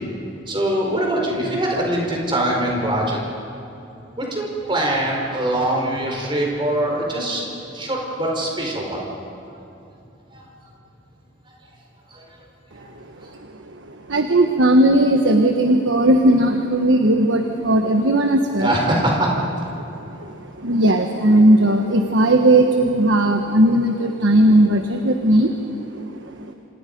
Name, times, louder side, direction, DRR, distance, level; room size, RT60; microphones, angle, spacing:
voice 1, 0.5-3.2 4.2-9.1 10.3-10.4 12.1-12.2 12.7-12.8 18.6-19.3, right 1 dB, 25° right, -1 dB, 4.6 m, -23 dB
voice 2, 13.9-18.7 19.7-26.5, right 1 dB, 75° right, 5 dB, 1.2 m, -17 dB
27.5 x 26.5 x 5.3 m, 2.8 s
head